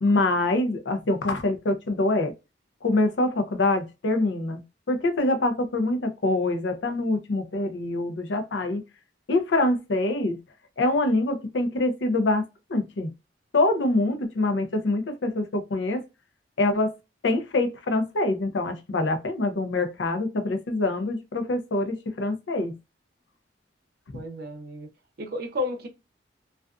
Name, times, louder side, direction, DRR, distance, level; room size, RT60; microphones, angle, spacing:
voice 1, 0.0-2.3 2.8-8.8 9.3-10.4 10.8-12.4 12.7-13.1 13.5-16.0 16.6-16.9 17.2-22.8 24.1-24.2, left 2 dB, 80° left, 0.6 m, -25 dB
voice 2, 24.1-24.9 25.2-25.9, left 2 dB, 55° right, 0.6 m, -32 dB
2.4 x 2.4 x 2.3 m
head